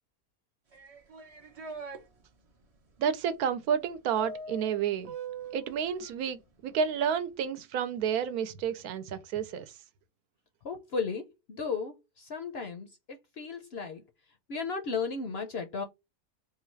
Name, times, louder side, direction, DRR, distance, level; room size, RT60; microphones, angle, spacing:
sound 1, 0.7-2.0 4.2-5.8, right 4 dB, 40° right, 0.5 m, -41 dB
voice 1, 3.0-5.1 5.5-9.6, right 7 dB, 80° right, 1.1 m, -30 dB
voice 2, 10.6-14.0 14.5-15.8, left 5 dB, 60° left, 0.7 m, -35 dB
3.8 x 2.3 x 4.4 m
omnidirectional pair, 1.6 m